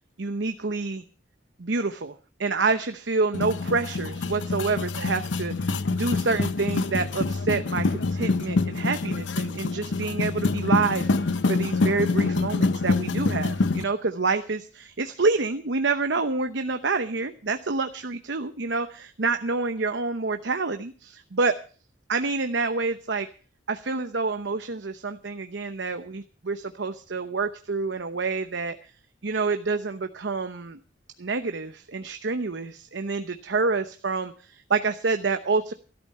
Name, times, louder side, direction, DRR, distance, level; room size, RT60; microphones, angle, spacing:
voice 1, 0.2-1.0 1.6-21.5 22.1-23.3 23.7-28.9 29.2-30.8 31.2-35.7, right 4 dB, 75° right, 8 dB, 0.9 m, -28 dB
sound 1, 3.3-13.8, left 3 dB, 85° left, 0.8 m, -26 dB
13.5 x 12.0 x 5.6 m, 0.39 s
head